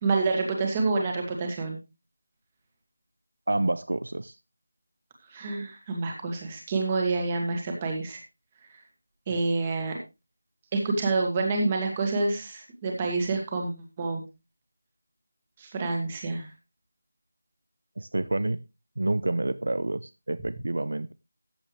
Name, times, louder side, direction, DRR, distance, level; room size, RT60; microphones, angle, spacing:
voice 1, 0.0-1.8 5.3-8.2 9.3-10.0 10.7-14.2 15.6-16.5, right 3 dB, 15° right, 2 dB, 1.9 m, -28 dB
voice 2, 3.5-4.4 18.0-18.6 19.0-21.1, right 2 dB, 60° right, 15 dB, 0.7 m, -28 dB
14.5 x 8.8 x 3.3 m, 0.26 s
figure-of-eight pair, 180°, 0 cm